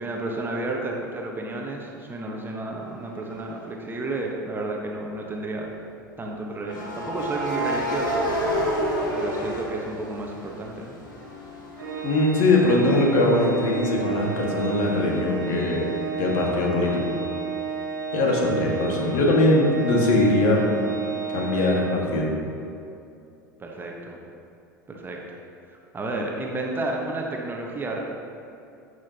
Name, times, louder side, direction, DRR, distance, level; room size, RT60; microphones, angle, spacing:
voice 1, 0.0-5.7 6.2-8.3 9.1-11.0 23.6-24.2 24.9-25.2 25.9-28.0, right 2 dB, 20° right, -1 dB, 1.3 m, -31 dB
sound 1, 3.4-3.6 6.7-10.6 11.0-14.5, equal, 75° left, 1.8 m, -30 dB
Organ, 11.8-22.5, right 5 dB, 75° right, 1.6 m, -32 dB
voice 2, 12.0-15.9 16.2-17.0 18.1-20.6 21.3-22.3, left 2 dB, 50° left, -1 dB, 1.8 m, -21 dB
15.0 x 6.3 x 3.0 m, 2.6 s
figure-of-eight pair, 75°, 11 cm